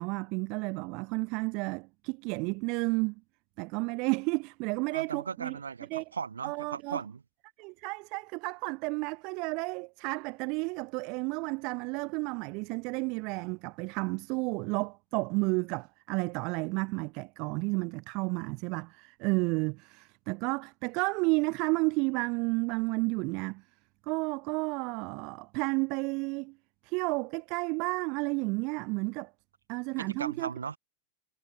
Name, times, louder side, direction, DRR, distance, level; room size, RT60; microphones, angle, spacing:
voice 1, 0.0-3.2 3.6-5.6 5.9-6.0 6.4-7.0 7.6-23.6 24.1-26.6 26.8-29.3 29.7-30.5, right 29 dB, 45° right, 0.4 m, -32 dB
voice 2, 4.9-7.2 30.0-30.8, right 6 dB, 75° right, 2.7 m, -38 dB
figure-of-eight pair, 90°, 0 cm